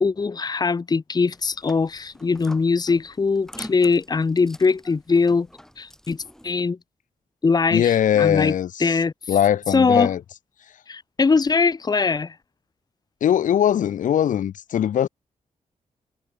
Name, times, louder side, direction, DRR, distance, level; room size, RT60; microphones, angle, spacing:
voice 1, 0.0-5.5 5.8-6.2 6.4-6.8 7.4-8.5 8.8-9.1 9.7-10.1 10.9-12.3, left 4 dB, 30° left, 1.2 m, -21 dB
sound 1, 1.3-6.5, equal, 5° left, 3.2 m, -45 dB
voice 2, 7.7-9.0 9.3-10.2 13.2-15.1, left 10 dB, 85° left, 2.0 m, -20 dB
cardioid pair, 100°, 13 cm